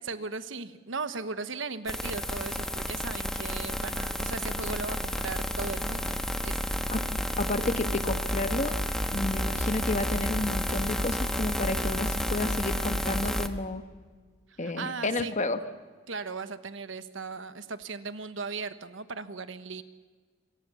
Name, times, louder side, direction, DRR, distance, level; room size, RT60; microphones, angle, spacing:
voice 1, 0.0-6.2 6.4-6.8 14.5-15.4 16.1-19.8, right 4 dB, 65° right, 11 dB, 1.2 m, -37 dB
sound 1, 1.9-13.5, equal, 5° left, 1.3 m, -31 dB
voice 2, 7.4-8.7 9.1-13.9 14.6-15.6, left 2 dB, 35° left, 9 dB, 1.5 m, -31 dB
27.0 x 23.0 x 7.1 m, 1.5 s
head